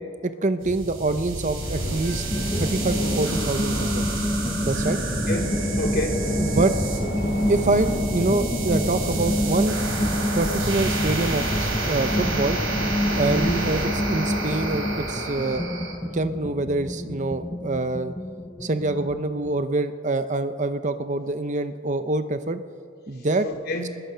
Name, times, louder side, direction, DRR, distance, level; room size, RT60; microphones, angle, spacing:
voice 1, 0.2-4.0 4.6-5.0 6.4-6.7 7.5-9.8 10.4-12.6 13.1-15.7 16.1-18.1 18.6-22.6 23.1-23.5, right 2 dB, 35° right, 10 dB, 0.7 m, -25 dB
sound 1, 0.6-15.9, right 2 dB, 75° right, 4.6 m, -29 dB
sound 2, 1.6-8.0, equal, 65° left, 4.4 m, -35 dB
sound 3, 2.3-19.6, left 1 dB, 15° left, 0.5 m, -28 dB
voice 2, 5.3-6.3 13.3-13.7 23.4-24.0, equal, 50° left, 2 dB, 3.2 m, -29 dB
26.0 x 21.0 x 5.7 m, 2.3 s
head